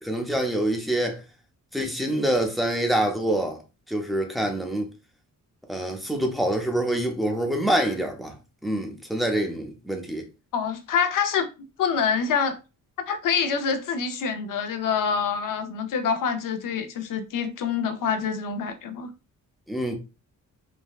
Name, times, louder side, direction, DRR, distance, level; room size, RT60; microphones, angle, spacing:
voice 1, 0.0-1.2 1.7-3.6 3.9-4.9 5.7-8.3 8.6-10.3 19.7-20.0, right 1 dB, ahead, 0.5 m, -26 dB
voice 2, 10.5-11.5 11.8-12.6 13.1-19.1, left 6 dB, 75° left, 0.6 m, -26 dB
3.4 x 2.1 x 2.3 m
wide cardioid pair, 145°, 33 cm